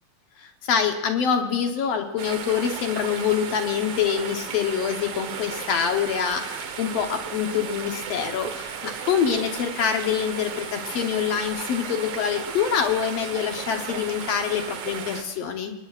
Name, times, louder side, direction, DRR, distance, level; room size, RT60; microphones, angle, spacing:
voice 1, 0.4-15.7, left 7 dB, 70° left, 4 dB, 1.6 m, -25 dB
sound 1, 2.2-15.2, right 6 dB, 65° right, 1.4 m, -35 dB
27.0 x 21.0 x 2.5 m, 1.1 s
omnidirectional pair, 4.2 m